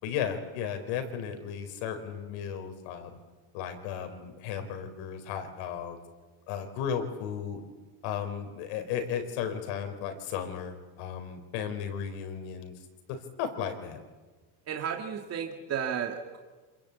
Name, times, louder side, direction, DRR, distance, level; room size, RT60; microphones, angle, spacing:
voice 1, 0.0-3.1 3.5-6.0 6.5-7.6 8.0-12.7 13.1-14.0, left 8 dB, 70° left, 7 dB, 4.6 m, -35 dB
voice 2, 14.7-16.4, right 8 dB, 35° right, 3 dB, 2.3 m, -33 dB
27.0 x 21.0 x 8.5 m, 1.3 s
cardioid pair, 140°, 46 cm